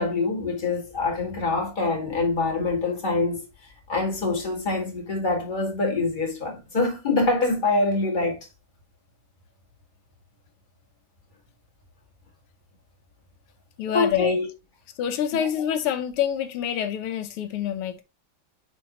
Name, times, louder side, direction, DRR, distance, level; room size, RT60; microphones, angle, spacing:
voice 1, 0.0-8.4 13.9-14.5 15.3-15.5, left 3 dB, 20° left, 2.1 m, -25 dB
voice 2, 13.8-14.4 15.0-18.0, left 9 dB, 90° left, 1.8 m, -26 dB
9.8 x 3.6 x 3.0 m
omnidirectional pair, 2.4 m